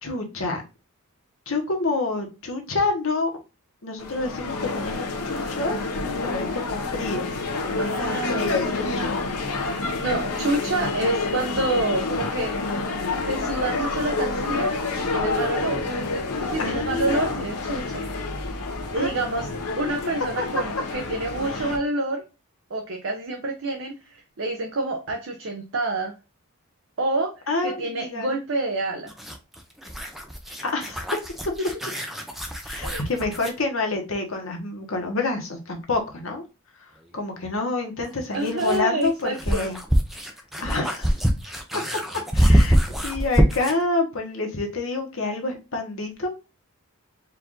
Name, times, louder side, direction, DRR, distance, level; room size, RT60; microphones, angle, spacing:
voice 1, 0.0-0.6 1.5-3.3 3.8-5.8 6.2-7.3 7.6-9.1 16.6-17.4 19.0-19.2 20.4-20.5 21.4-21.7 27.5-28.3 30.6-31.0 32.6-36.4 37.1-39.8 40.6-41.1 42.3-42.8 43.0-46.3, left 3 dB, 60° left, 3 dB, 1.2 m, -28 dB
sound 1, 4.0-21.8, left 3 dB, 85° left, 1.0 m, -28 dB
voice 2, 7.8-8.8 9.6-12.5 13.3-14.7 15.0-15.8 16.4-18.0 18.9-19.5 19.8-22.2 22.7-23.9 24.4-26.1 27.0-27.3 27.6-29.1 32.8-33.0 38.3-39.7, right 2 dB, 55° right, 2 dB, 0.7 m, -28 dB
sound 2, 29.1-33.6 36.0-36.1 38.0-43.9, equal, ahead, 0.5 m, -24 dB
4.6 x 2.5 x 3.7 m, 0.28 s
head